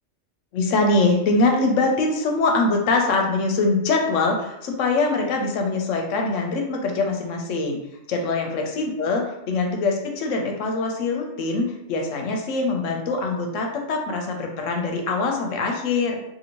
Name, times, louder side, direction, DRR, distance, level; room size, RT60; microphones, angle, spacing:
voice 1, 0.5-7.8 8.1-16.2, left 3 dB, 80° left, 2 dB, 1.0 m, -23 dB
2.7 x 2.7 x 2.9 m, 0.82 s
omnidirectional pair, 1.3 m